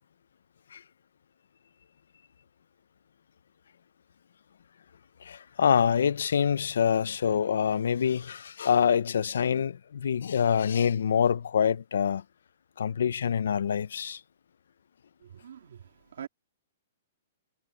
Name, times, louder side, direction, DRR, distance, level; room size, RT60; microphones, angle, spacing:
voice 1, 5.2-12.2 12.8-14.2, left 7 dB, 85° left, 0.5 m, -26 dB
voice 2, 15.2-16.3, right 9 dB, 75° right, 2.5 m, -44 dB
hypercardioid pair, 170°, 0 cm